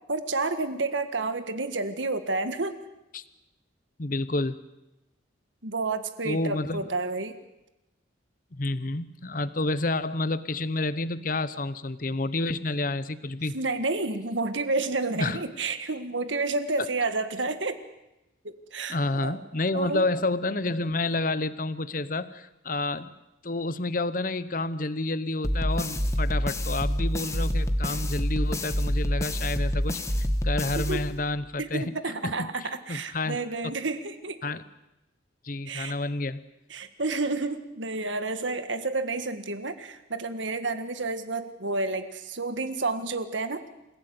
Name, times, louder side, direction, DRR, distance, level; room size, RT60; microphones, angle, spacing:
voice 1, 0.1-2.8 5.6-7.4 13.5-17.8 18.4-19.4 19.7-20.0 30.9-31.1 31.6-34.4 35.7-35.9 36.7-43.6, right 3 dB, 75° right, 10 dB, 1.7 m, -30 dB
voice 2, 4.0-4.6 6.2-6.8 8.5-13.6 15.2-15.4 18.9-23.1 23.4-30.0 30.4-31.8 32.2-32.5 32.9-33.4 34.4-34.6 35.4-36.4, left 2 dB, 45° left, 15 dB, 0.9 m, -29 dB
sound 1, 25.4-31.5, equal, 15° left, 1.4 m, -27 dB
28.0 x 16.0 x 9.5 m, 0.95 s
head